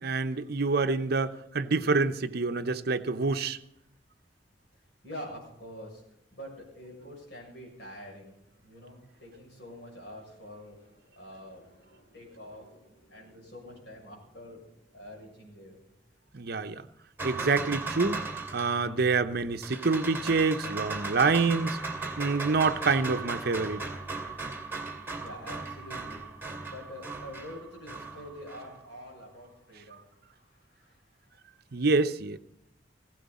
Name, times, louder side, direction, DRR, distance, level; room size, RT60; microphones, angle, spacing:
voice 1, 0.0-3.6 16.3-16.8 17.2-18.2 18.5-21.8 22.2-23.8 31.7-32.4, right 4 dB, 60° right, 0.7 m, -27 dB
voice 2, 5.0-6.0 6.3-15.8 25.1-26.4 26.7-31.3, left 1 dB, 65° left, 7.1 m, -46 dB
sound 1, 17.2-28.8, right 3 dB, 10° right, 2.6 m, -37 dB
16.5 x 16.5 x 4.2 m
head